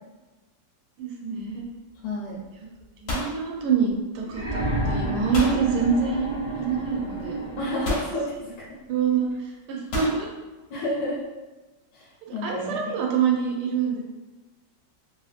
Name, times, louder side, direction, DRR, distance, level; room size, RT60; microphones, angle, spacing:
voice 1, 1.0-1.7 3.0-7.4 8.9-10.3 12.4-14.0, right 6 dB, 75° right, 0 dB, 1.2 m, -26 dB
sound 1, 1.4-1.8 2.0-2.5 2.7-4.3 5.3-5.6 6.8-6.9 7.8-8.2 9.9-10.2, left 2 dB, 55° left, 0.9 m, -31 dB
voice 2, 2.0-2.4 7.6-8.4 8.7-8.8 10.7-11.2 11.9-12.9, left 1 dB, 80° left, -6 dB, 1.3 m, -30 dB
sound 2, 4.3-8.1 9.3-9.4, right 1 dB, 30° right, 0.3 m, -30 dB
3.0 x 2.7 x 2.4 m, 1.2 s
omnidirectional pair, 1.9 m